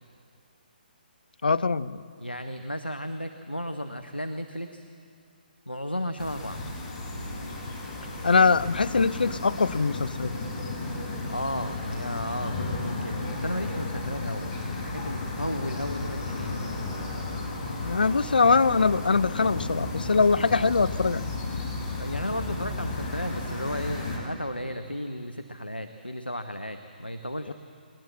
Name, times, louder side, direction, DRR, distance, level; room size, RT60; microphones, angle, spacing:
voice 1, 1.4-2.0 8.2-10.3 17.8-21.2 27.5-27.6, left 4 dB, 65° left, 15 dB, 0.6 m, -22 dB
voice 2, 2.2-4.9 5.7-6.6 11.3-16.6 22.0-27.5, left 1 dB, 90° left, 7 dB, 1.0 m, -34 dB
sound 1, 6.2-24.2, left 2 dB, 30° left, 5.3 m, -33 dB
20.5 x 19.5 x 7.5 m, 2.3 s
figure-of-eight pair, 135°, 5 cm